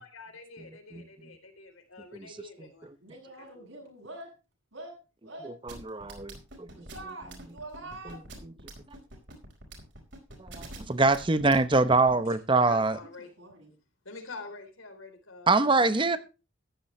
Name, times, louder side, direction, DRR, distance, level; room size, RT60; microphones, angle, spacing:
voice 1, 0.0-2.9 3.4-3.7 12.6-13.3 14.1-15.9, left 3 dB, 85° left, 3.7 m, -47 dB
voice 2, 3.0-4.3 4.7-5.0 5.2-5.5 6.7-8.2 12.1-12.3 13.4-13.7, right 2 dB, 75° right, 7.9 m, -44 dB
voice 3, 5.7-6.7 8.4-8.5 10.4-13.0 15.5-16.2, right 3 dB, 25° right, 0.8 m, -24 dB
sound 1, 5.7-12.1, right 2 dB, 60° right, 4.6 m, -45 dB
14.5 x 11.0 x 3.2 m
head